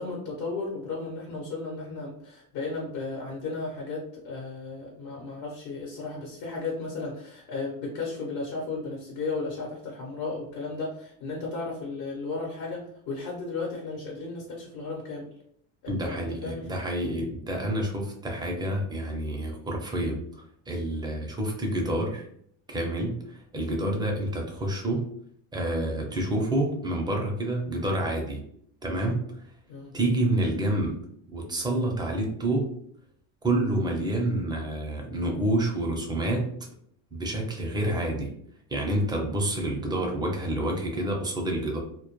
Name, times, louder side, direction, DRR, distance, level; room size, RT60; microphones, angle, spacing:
voice 1, 0.0-15.3 15.8-16.7 29.7-29.9, left 3 dB, 80° left, -2 dB, 1.0 m, -34 dB
voice 2, 15.9-22.3 22.7-25.1 25.5-28.4 28.8-29.3 29.9-31.0 31.3-32.7 33.4-36.6 37.1-38.3 38.7-41.8, right 1 dB, 10° right, 0 dB, 0.4 m, -28 dB
2.1 x 2.1 x 2.9 m, 0.66 s
cardioid pair, 120°, 44 cm